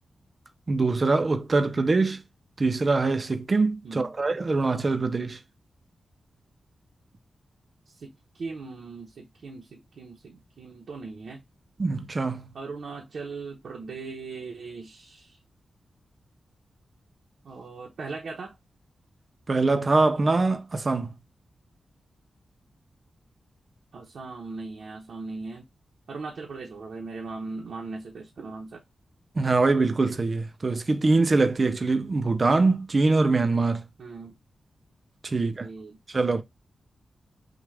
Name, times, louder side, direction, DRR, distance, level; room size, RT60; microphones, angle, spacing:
voice 1, 0.7-2.2 2.6-5.4 11.8-12.5 19.5-21.1 29.4-33.8 35.2-35.7 36.1-36.4, right 3 dB, 35° right, 0.4 m, -23 dB
voice 2, 7.9-11.4 12.5-15.4 17.4-18.5 23.9-25.7 26.1-28.8 34.0-34.3 35.6-36.0, right 3 dB, 70° right, 0.9 m, -39 dB
6.0 x 2.4 x 3.3 m
wide cardioid pair, 135°, 0 cm